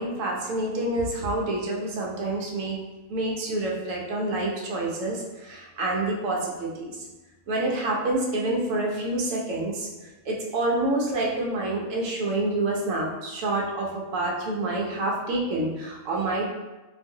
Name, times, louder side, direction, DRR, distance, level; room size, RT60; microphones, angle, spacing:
voice 1, 0.0-2.8 3.1-6.9 7.5-9.9 10.2-16.5, right 2 dB, 65° right, -2 dB, 1.0 m, -27 dB
3.8 x 2.5 x 2.7 m, 1.1 s
omnidirectional pair, 1.6 m